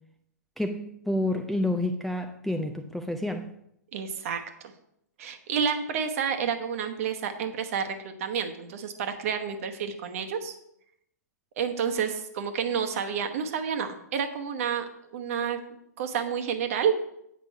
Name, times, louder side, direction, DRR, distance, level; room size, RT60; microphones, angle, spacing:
voice 1, 0.6-3.5, left 1 dB, ahead, 4 dB, 0.4 m, -29 dB
voice 2, 3.9-4.4 5.2-10.5 11.6-15.6 16.0-16.9, right 7 dB, 50° right, 6 dB, 1.1 m, -29 dB
8.5 x 5.1 x 4.6 m, 0.77 s
hypercardioid pair, 120°, 10 cm